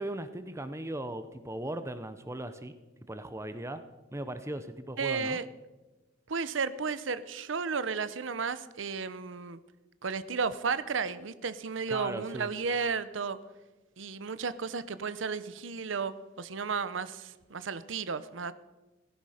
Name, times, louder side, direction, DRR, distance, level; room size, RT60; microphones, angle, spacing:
voice 1, 0.0-2.7 3.1-3.8 4.1-5.4 11.9-12.5, right 1 dB, 15° right, 11 dB, 0.7 m, -38 dB
voice 2, 5.0-5.4 6.3-9.6 10.0-13.4 14.0-18.5, right 5 dB, 75° right, 14 dB, 0.7 m, -33 dB
16.5 x 14.5 x 5.0 m, 1.1 s
head